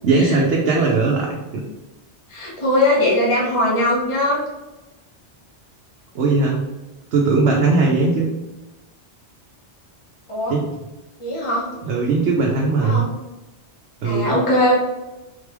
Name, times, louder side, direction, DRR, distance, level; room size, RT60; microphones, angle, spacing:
voice 1, 0.0-1.4 6.1-6.6 7.1-8.3 10.5-10.7 11.8-13.0 14.0-14.3, right 3 dB, 75° right, -2 dB, 1.0 m, -18 dB
voice 2, 2.3-4.4 10.3-10.6 11.2-11.7 12.8-13.1 14.0-14.7, left 1 dB, 30° left, -5 dB, 1.0 m, -20 dB
3.8 x 3.4 x 3.3 m, 1.0 s
omnidirectional pair, 1.2 m